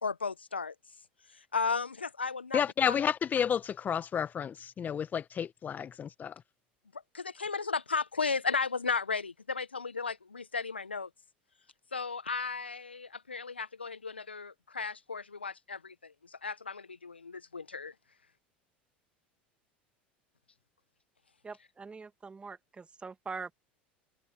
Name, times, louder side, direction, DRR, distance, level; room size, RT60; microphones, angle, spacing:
voice 1, 0.0-0.7 1.3-3.0 6.9-11.1 11.9-17.9, left 4 dB, 90° left, 1.6 m, -35 dB
voice 2, 2.5-6.3, left 8 dB, 30° left, 1.8 m, -31 dB
voice 3, 21.4-23.5, right 4 dB, 20° right, 2.5 m, -43 dB
figure-of-eight pair, 75°, 6 cm